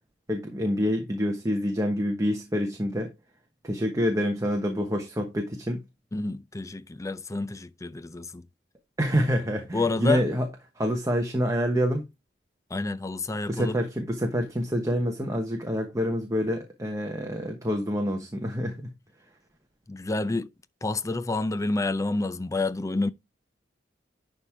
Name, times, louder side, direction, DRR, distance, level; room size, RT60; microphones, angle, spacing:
voice 1, 0.3-3.1 3.6-5.8 9.0-10.5 10.8-12.0 13.5-18.9, equal, 20° right, 1.1 m, -27 dB
voice 2, 6.1-8.4 9.7-10.2 12.7-13.8 19.9-20.5 20.8-23.1, left 3 dB, 20° left, 0.5 m, -29 dB
11.0 x 3.7 x 4.5 m
head